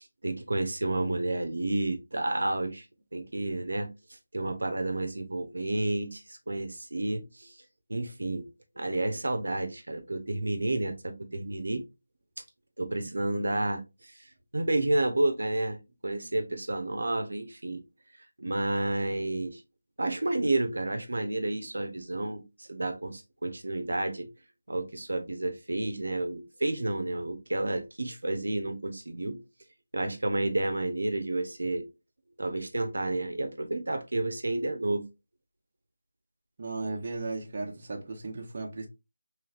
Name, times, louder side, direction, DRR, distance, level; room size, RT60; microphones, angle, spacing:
voice 1, 0.0-2.9 3.1-7.6 7.9-8.5 8.8-11.8 12.8-15.8 16.0-17.8 18.4-19.6 20.0-24.3 24.7-29.4 29.9-31.9 32.4-35.0, right 2 dB, 80° right, 0.6 m, -30 dB
voice 2, 36.6-38.9, right 3 dB, 35° right, 0.8 m, -35 dB
3.1 x 3.1 x 2.4 m
figure-of-eight pair, 170°, 0 cm